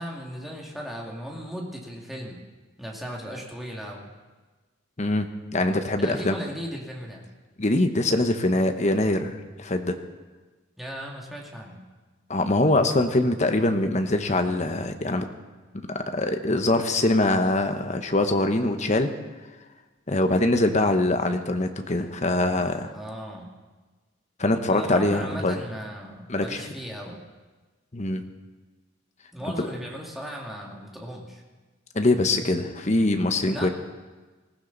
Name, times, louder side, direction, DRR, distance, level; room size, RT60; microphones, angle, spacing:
voice 1, 0.0-2.4 2.8-4.1 5.9-7.2 10.8-11.8 22.8-23.5 24.7-27.2 29.3-31.4 33.5-33.7, equal, ahead, -2 dB, 2.3 m, -37 dB
voice 2, 5.0-6.4 7.6-10.0 12.3-15.3 15.7-19.1 20.1-22.9 24.4-25.6 26.3-26.6 27.9-28.2 29.4-29.7 31.9-33.7, left 2 dB, 35° left, 7 dB, 1.1 m, -23 dB
20.0 x 15.0 x 4.1 m, 1.3 s
head